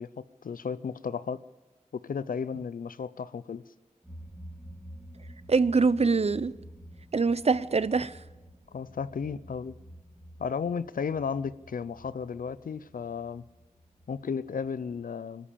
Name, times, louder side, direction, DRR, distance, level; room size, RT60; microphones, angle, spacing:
voice 1, 0.0-1.4 2.0-3.6 8.7-9.8 10.4-13.4 14.1-15.5, left 6 dB, 85° left, 0.6 m, -34 dB
sound 1, 4.0-15.0, equal, 10° right, 4.3 m, -50 dB
voice 2, 5.5-6.5 7.1-8.1, right 4 dB, 50° right, 0.7 m, -24 dB
24.0 x 13.0 x 8.6 m
wide cardioid pair, 60°, 14 cm